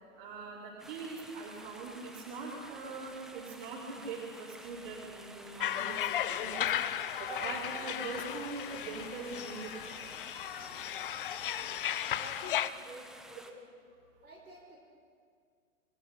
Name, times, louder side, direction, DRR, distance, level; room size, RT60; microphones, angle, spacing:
voice 1, 0.2-6.7 7.2-10.0, right 4 dB, 35° right, -8 dB, 5.6 m, -42 dB
sound 1, 0.8-13.5, right 1 dB, ahead, 0.8 m, -51 dB
sound 2, 5.6-12.7, left 11 dB, 40° left, 0.7 m, -35 dB
voice 2, 10.6-10.9 11.4-11.5 12.1-13.6 14.2-14.8, right 2 dB, 80° right, -1 dB, 5.3 m, -52 dB
29.0 x 22.0 x 5.9 m, 2.1 s
figure-of-eight pair, 120°, 42 cm